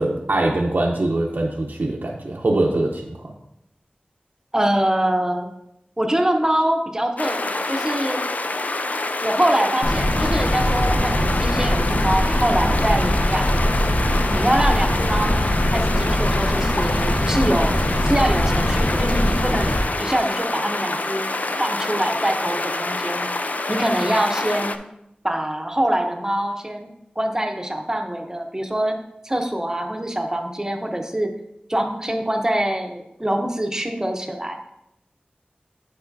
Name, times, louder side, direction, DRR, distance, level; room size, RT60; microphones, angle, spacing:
voice 1, 0.0-3.3, right 2 dB, 75° right, -1 dB, 0.6 m, -23 dB
voice 2, 4.5-5.5 6.0-8.2 9.2-13.5 14.3-19.7 20.0-23.3 23.7-24.8 25.2-26.9 27.2-28.9 29.2-31.3 31.7-34.6, right 1 dB, 20° right, 3 dB, 0.8 m, -24 dB
sound 1, 7.2-24.8, left 2 dB, 55° left, 0.4 m, -26 dB
sound 2, 9.8-19.8, equal, 75° left, 1.2 m, -21 dB
8.5 x 4.8 x 2.7 m, 0.83 s
wide cardioid pair, 60°, 3 cm